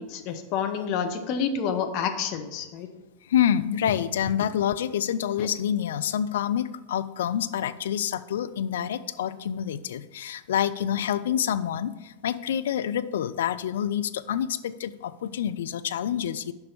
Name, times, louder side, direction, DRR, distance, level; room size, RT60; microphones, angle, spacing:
voice 1, 0.0-2.9 5.4-5.5, left 7 dB, 40° left, 6 dB, 0.9 m, -29 dB
voice 2, 3.3-16.5, left 9 dB, 60° left, 12 dB, 0.4 m, -27 dB
6.3 x 5.3 x 6.9 m, 1.1 s
figure-of-eight pair, 90°, 0 cm